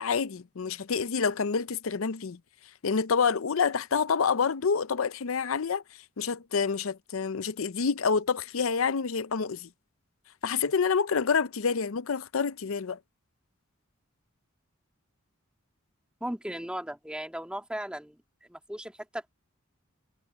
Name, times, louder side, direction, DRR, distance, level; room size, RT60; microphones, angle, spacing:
voice 1, 0.0-2.4 2.8-5.8 6.2-9.7 10.4-13.0, left 5 dB, 75° left, 0.6 m, -27 dB
voice 2, 16.2-18.2 18.5-19.3, right 1 dB, 5° right, 1.9 m, -36 dB
head